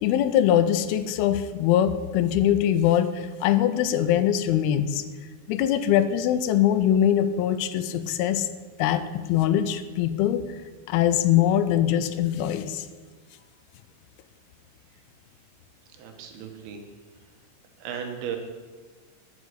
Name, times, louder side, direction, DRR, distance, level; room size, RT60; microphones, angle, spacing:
voice 1, 0.0-5.0 5.5-8.5 8.8-10.5 10.9-12.9, left 10 dB, 90° left, 11 dB, 2.5 m, -22 dB
voice 2, 15.9-16.8 17.8-18.4, right 8 dB, 85° right, 4 dB, 3.1 m, -35 dB
9.7 x 6.4 x 8.1 m, 1.4 s
omnidirectional pair, 4.4 m